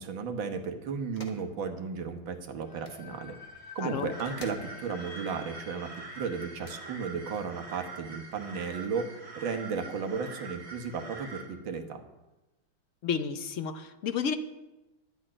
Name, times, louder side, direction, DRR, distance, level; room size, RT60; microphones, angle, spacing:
voice 1, 0.0-3.3 3.8-5.9 6.2-12.0, right 5 dB, 75° right, 6 dB, 2.0 m, -34 dB
sound 1, 1.2-1.4 2.7-3.0 4.2-4.7 6.5-6.8, left 2 dB, 25° left, 1.4 m, -47 dB
sound 2, 2.6-9.5, left 5 dB, 10° left, 2.3 m, -50 dB
voice 2, 3.8-4.1 13.0-14.4, left 6 dB, 70° left, 9 dB, 0.7 m, -31 dB
sound 3, 4.1-11.5, right 4 dB, 40° right, 3.0 m, -45 dB
11.0 x 7.5 x 9.8 m, 1.0 s
omnidirectional pair, 2.2 m